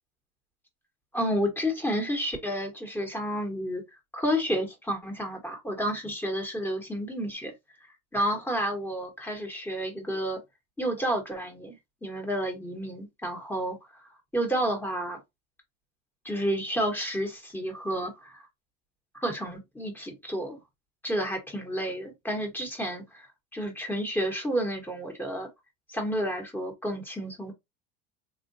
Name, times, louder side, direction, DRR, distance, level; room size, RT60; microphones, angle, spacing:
voice 1, 1.1-3.8 4.1-7.5 8.1-10.4 10.8-13.8 14.3-15.2 16.2-18.5 19.2-20.6 21.0-23.3 23.5-25.5 25.9-27.5, equal, 5° left, 1.3 m, -30 dB
3.7 x 2.5 x 2.7 m
supercardioid pair, 110°, 31 cm